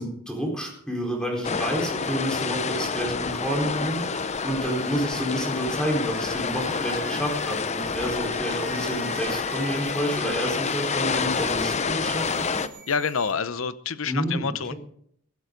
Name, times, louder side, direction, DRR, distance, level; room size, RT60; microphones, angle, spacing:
voice 1, 0.0-4.0 4.4-12.6 14.0-14.8, equal, 5° left, 0 dB, 4.2 m, -29 dB
sound 1, 1.1-13.3, right 7 dB, 50° right, 4.2 m, -46 dB
sound 2, 1.4-12.7, left 5 dB, 35° left, 0.7 m, -28 dB
voice 2, 12.9-14.7, left 6 dB, 70° left, 14 dB, 0.8 m, -27 dB
16.5 x 15.0 x 3.9 m, 0.68 s
head